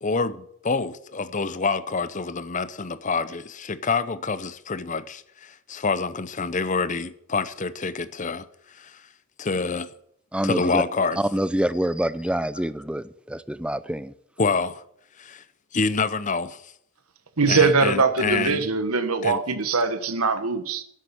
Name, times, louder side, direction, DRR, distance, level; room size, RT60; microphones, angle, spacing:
voice 1, 0.0-9.0 9.4-9.9 10.4-11.2 14.4-14.8 15.2-15.4 15.7-16.7 17.5-18.6 19.2-19.4, left 4 dB, 35° left, 0.7 m, -27 dB
voice 2, 10.3-10.8 11.2-14.1, right 1 dB, 5° right, 0.5 m, -26 dB
voice 3, 17.4-20.8, right 4 dB, 80° right, 1.3 m, -22 dB
11.5 x 8.1 x 9.7 m
head